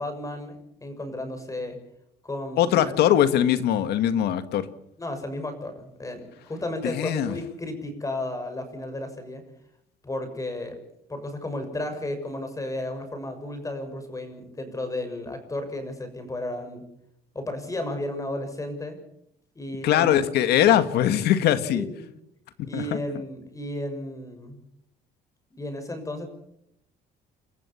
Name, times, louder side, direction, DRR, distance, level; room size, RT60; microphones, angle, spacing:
voice 1, 0.0-1.8 2.2-3.0 5.0-9.4 10.0-10.8 11.1-16.8 17.3-19.0 19.5-20.3 21.7-22.1 22.6-24.6 25.6-26.3, left 1 dB, 20° left, 8 dB, 6.6 m, -33 dB
voice 2, 2.6-4.7 6.8-7.3 19.8-21.9 22.6-23.0, left 11 dB, 75° left, 11 dB, 1.9 m, -21 dB
30.0 x 14.5 x 7.2 m, 0.74 s
cardioid pair, 110°, 17 cm